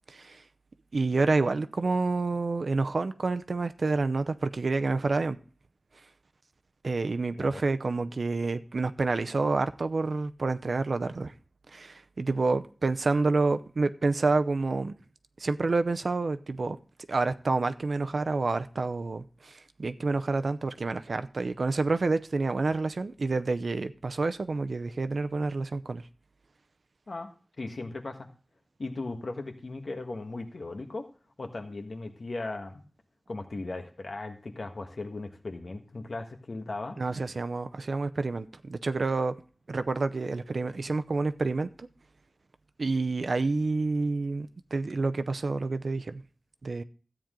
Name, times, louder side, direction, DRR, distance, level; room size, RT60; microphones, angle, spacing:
voice 1, 0.1-0.4 0.9-5.4 6.8-11.3 11.7-14.9 15.4-16.8 17.1-26.0 37.0-39.3 39.7-41.9 42.8-46.2 46.6-46.8, right 3 dB, 80° right, 0.6 m, -28 dB
voice 2, 27.1-28.3 28.8-31.1 31.4-32.8 33.3-37.0, left 2 dB, 75° left, 1.5 m, -37 dB
13.5 x 8.8 x 3.8 m
wide cardioid pair, 75°, 0 cm